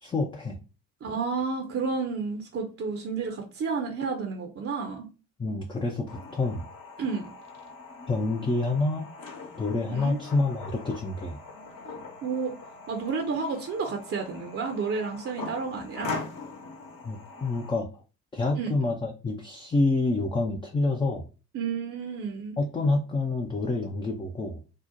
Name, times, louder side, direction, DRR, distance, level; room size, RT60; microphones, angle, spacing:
voice 1, 0.0-0.6 5.4-6.6 8.1-9.1 9.6-11.4 17.0-17.9 18.3-21.3 22.6-24.6, left 3 dB, 15° left, 1 dB, 0.4 m, -27 dB
voice 2, 1.0-5.1 7.0-7.3 9.9-10.2 12.2-12.6 12.9-16.1 18.6-18.7 21.5-22.6, right 5 dB, 35° right, 3 dB, 0.6 m, -31 dB
sound 1, 6.1-17.7, left 3 dB, 55° left, 1.0 m, -42 dB
2.8 x 2.1 x 3.7 m, 0.33 s
figure-of-eight pair, 40°, 43 cm